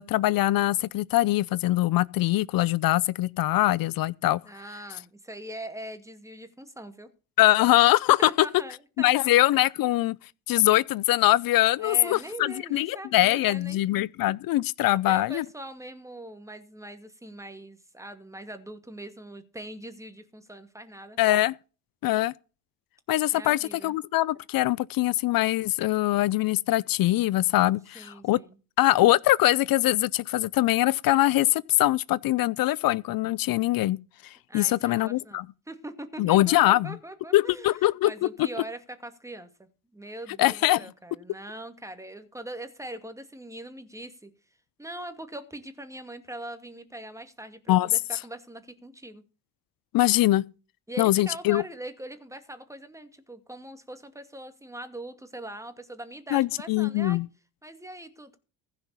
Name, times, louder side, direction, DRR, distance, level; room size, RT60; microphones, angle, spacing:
voice 1, 0.0-4.4 7.4-8.5 9.0-10.2 10.5-15.4 21.2-21.5 22.0-22.3 23.1-28.4 28.8-34.0 34.5-35.4 36.2-37.0 37.3-38.1 38.4-38.5 40.4-40.8 47.7-47.9 49.9-50.4 51.0-51.6 56.3-57.3, left 16 dB, 50° left, 0.6 m, -23 dB
voice 2, 4.4-7.1 8.2-9.3 11.8-14.0 14.8-21.2 23.3-23.9 27.9-28.6 34.5-44.3 44.8-49.2 50.9-57.2 57.6-58.4, right 1 dB, 5° right, 2.4 m, -42 dB
15.5 x 5.8 x 7.0 m
hypercardioid pair, 70°, 45 cm